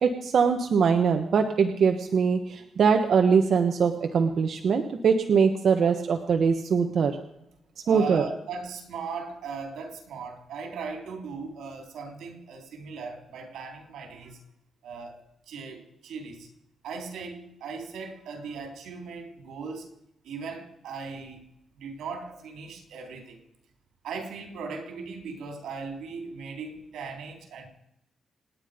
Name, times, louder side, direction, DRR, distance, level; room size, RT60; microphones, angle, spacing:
voice 1, 0.0-7.2 7.9-8.2, right 6 dB, 55° right, 1.3 m, -22 dB
voice 2, 7.8-14.4 14.8-15.2 15.5-16.5 16.8-19.9 20.2-21.4 21.8-23.4 24.0-27.7, right 4 dB, 85° right, 3.7 m, -38 dB
27.5 x 9.8 x 5.2 m
cardioid pair, 125°, 0 cm